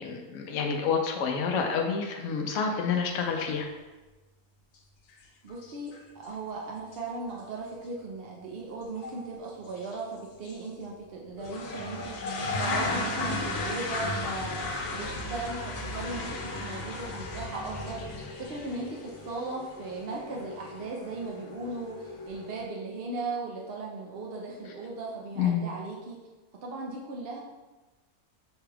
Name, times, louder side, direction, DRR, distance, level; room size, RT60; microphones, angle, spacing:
voice 1, 0.0-3.7 25.4-25.7, left 6 dB, 70° left, 2 dB, 0.8 m, -28 dB
sound 1, 5.1-5.2 5.5-6.0 6.3-6.4 6.9-7.0 7.3-7.4 9.0-9.2 9.8-10.0 10.4-10.5 11.4-22.7, left 2 dB, 85° left, 1.2 m, -35 dB
voice 2, 5.4-14.5 14.9-26.2 26.6-27.4, right 3 dB, 60° right, -2 dB, 0.6 m, -37 dB
6.8 x 2.3 x 3.3 m, 1.2 s
omnidirectional pair, 1.6 m